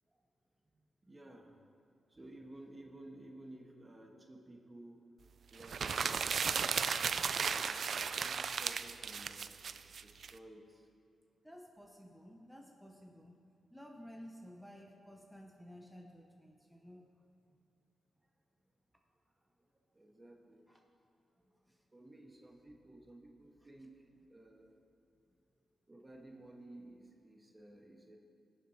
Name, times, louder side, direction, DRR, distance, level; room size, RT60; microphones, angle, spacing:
voice 1, 1.0-1.5 2.1-5.0 5.5-6.8 7.4-10.9 19.9-20.7 21.9-24.8 25.9-28.2, right 1 dB, 25° right, 2 dB, 1.4 m, -55 dB
sound 1, 5.6-10.3, right 6 dB, 65° right, 0.3 m, -35 dB
voice 2, 11.4-13.4 13.7-17.1 20.7-20.8 21.4-21.8, equal, 5° left, 1 dB, 0.9 m, -54 dB
17.0 x 7.4 x 2.9 m, 2.6 s
supercardioid pair, 50°, 0 cm